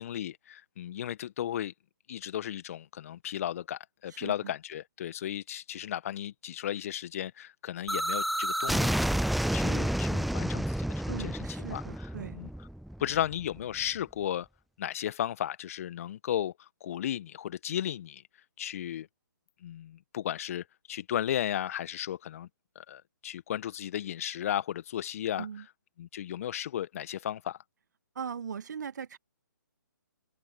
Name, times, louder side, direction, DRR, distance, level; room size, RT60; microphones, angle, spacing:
voice 1, 0.0-1.7 2.1-9.0 9.5-11.3 11.7-12.5 13.0-14.5 14.8-18.2 18.6-19.1 19.6-22.5 22.7-25.5 26.0-27.6, left 11 dB, 45° left, 1.4 m, -35 dB
voice 2, 4.1-4.5 11.1-12.4 25.4-25.7 28.2-29.2, right 7 dB, 60° right, 1.8 m, -39 dB
sound 1, 7.9-13.6, right 1 dB, ahead, 0.4 m, -30 dB
figure-of-eight pair, 135°, 11 cm